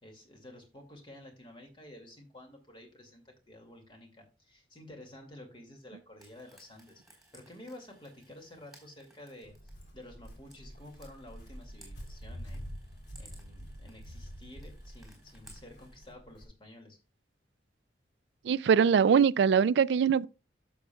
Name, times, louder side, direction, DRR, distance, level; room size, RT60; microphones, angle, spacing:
voice 1, 0.0-12.6 13.2-17.0, left 1 dB, 25° left, 2.2 m, -51 dB
Frying (food), 6.2-16.1, right 1 dB, ahead, 3.7 m, -61 dB
Walk footsteps, 9.4-16.4, equal, 75° left, 2.6 m, -47 dB
voice 2, 18.4-20.3, right 7 dB, 70° right, 0.3 m, -22 dB
11.5 x 7.3 x 2.3 m
head